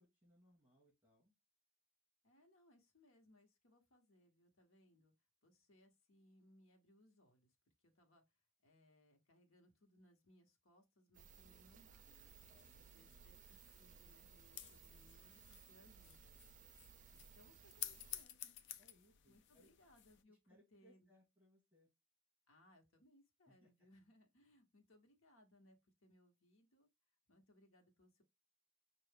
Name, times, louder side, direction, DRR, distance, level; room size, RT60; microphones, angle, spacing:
voice 1, 0.0-1.3 12.5-13.3 18.8-19.7 20.3-21.9 23.5-23.7, equal, 10° right, 2.0 m, -72 dB
voice 2, 2.2-5.1 5.4-7.6 7.8-12.3 12.7-16.3 17.1-18.6 19.3-21.1 22.5-26.9 27.3-28.2, left 1 dB, 85° left, 1.1 m, -70 dB
sound 1, 11.1-18.2, right 7 dB, 40° right, 0.4 m, -62 dB
sound 2, 12.0-20.2, left 11 dB, 60° left, 0.4 m, -54 dB
5.5 x 2.4 x 3.5 m
head